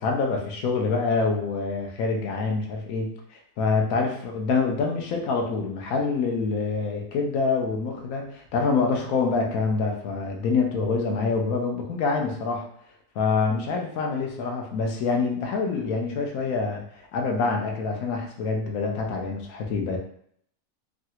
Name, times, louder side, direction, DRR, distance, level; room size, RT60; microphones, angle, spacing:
voice 1, 0.0-12.7 13.1-20.0, left 4 dB, 80° left, 1 dB, 1.1 m, -26 dB
3.1 x 2.4 x 2.8 m, 0.65 s
omnidirectional pair, 1.5 m